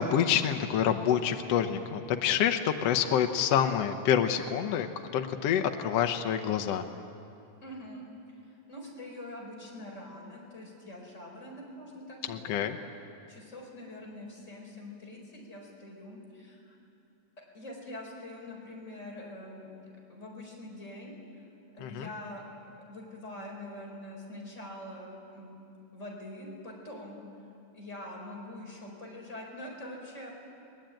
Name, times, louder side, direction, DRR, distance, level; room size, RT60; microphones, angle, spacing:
voice 1, 0.0-6.9 12.3-12.8 21.8-22.1, left 9 dB, 70° left, 5 dB, 1.8 m, -27 dB
voice 2, 7.6-8.0 8.7-12.6 13.3-16.8 17.4-19.7 20.1-21.1 21.7-22.4 22.9-27.2 27.7-30.3, left 1 dB, 25° left, -2 dB, 5.0 m, -44 dB
22.0 x 21.0 x 9.1 m, 2.7 s
omnidirectional pair, 3.4 m